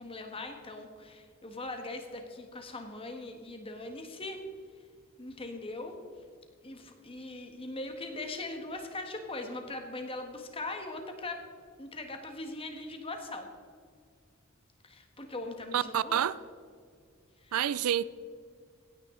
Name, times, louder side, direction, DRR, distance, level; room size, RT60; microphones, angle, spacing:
voice 1, 0.0-4.4 5.2-6.0 6.6-11.4 11.8-13.5 14.8-16.2 17.4-17.5, left 2 dB, 25° left, 1.4 m, -40 dB
voice 2, 15.7-16.4 17.5-18.0, right 10 dB, 85° right, 0.4 m, -28 dB
17.0 x 9.6 x 3.8 m
head